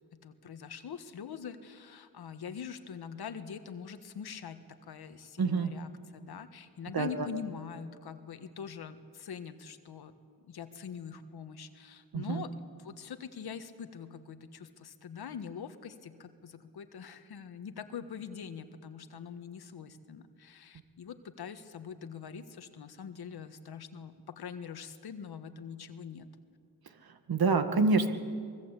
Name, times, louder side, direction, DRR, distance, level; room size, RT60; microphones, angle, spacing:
voice 1, 0.1-10.1 10.5-12.5 12.8-26.3, left 7 dB, 80° left, 9 dB, 1.6 m, -43 dB
voice 2, 5.4-5.7 6.9-7.3 12.1-12.4 27.3-28.1, right 4 dB, 70° right, 8 dB, 2.0 m, -26 dB
24.0 x 21.5 x 8.4 m, 2.2 s
cardioid pair, 65°, 38 cm